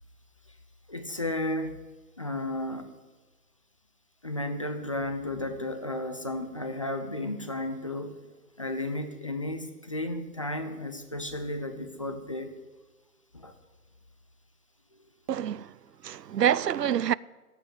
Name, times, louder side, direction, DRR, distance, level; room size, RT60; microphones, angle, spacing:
voice 1, 0.9-1.8 2.2-2.9 4.2-8.2 8.6-12.5 13.3-13.5, left 1 dB, 20° left, 0.5 m, -33 dB
voice 2, 15.3-15.7 16.0-17.1, right 9 dB, 85° right, 0.5 m, -26 dB
15.0 x 5.4 x 9.6 m
figure-of-eight pair, 140°, 47 cm